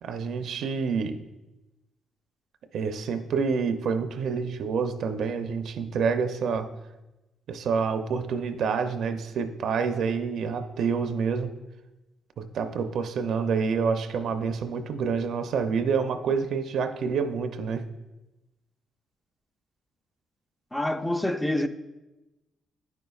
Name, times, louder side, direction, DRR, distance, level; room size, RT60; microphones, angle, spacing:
voice 1, 0.0-1.2 2.7-6.7 7.5-11.5 12.4-17.9, right 5 dB, 70° right, 0.5 m, -28 dB
voice 2, 20.7-21.7, left 1 dB, 10° left, 0.4 m, -26 dB
10.5 x 5.2 x 2.3 m
cardioid pair, 90°, 0 cm